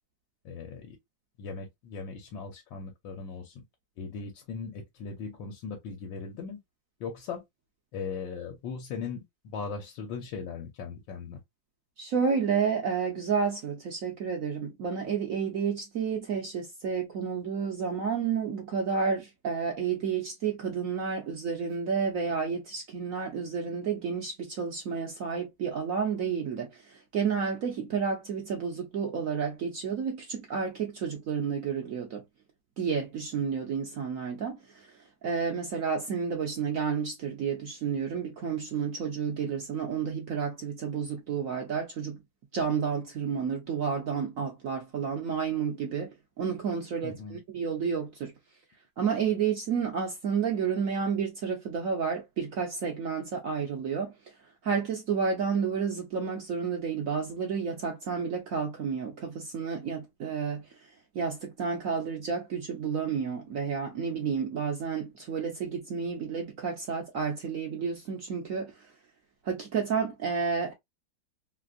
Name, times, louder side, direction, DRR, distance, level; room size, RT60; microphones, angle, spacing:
voice 1, 0.4-1.0 1.4-3.6 4.0-6.6 7.0-7.4 7.9-11.4 47.0-47.4, left 5 dB, 80° left, 1.4 m, -38 dB
voice 2, 12.0-32.2 32.8-42.2 42.5-48.3 49.0-54.1 54.6-60.8 61.1-68.9 69.4-70.7, right 6 dB, 65° right, 0.8 m, -31 dB
3.3 x 2.5 x 2.4 m
omnidirectional pair, 2.1 m